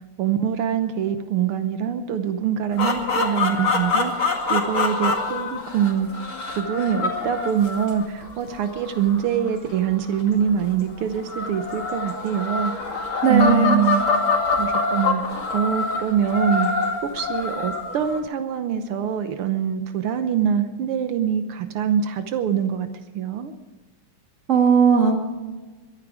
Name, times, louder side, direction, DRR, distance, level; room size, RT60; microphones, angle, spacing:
voice 1, 0.2-6.1 6.6-12.7 13.3-14.1 14.6-16.7 17.1-22.9 23.2-23.5, right 8 dB, 85° right, 9 dB, 1.8 m, -24 dB
sound 1, 2.7-10.5 11.2-18.2, left 4 dB, 65° left, 3.0 m, -25 dB
voice 2, 13.2-13.8 24.5-25.2, right 6 dB, 35° right, 3 dB, 2.3 m, -17 dB
22.5 x 11.0 x 4.9 m, 1.3 s
omnidirectional pair, 2.4 m